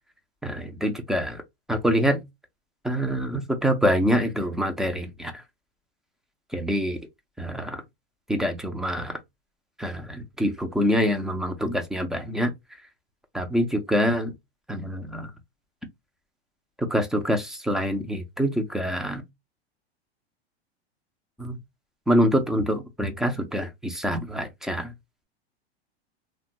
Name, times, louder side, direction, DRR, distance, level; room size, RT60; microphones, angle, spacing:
voice 1, 0.4-1.4 1.7-2.2 2.8-5.4 6.5-7.0 7.4-7.8 8.3-9.2 9.8-12.5 13.3-14.3 14.7-15.3 16.8-19.2 21.4-21.6 22.1-24.9, equal, ahead, 0.3 m, -25 dB
2.9 x 2.2 x 2.6 m
hypercardioid pair, 115°, 33 cm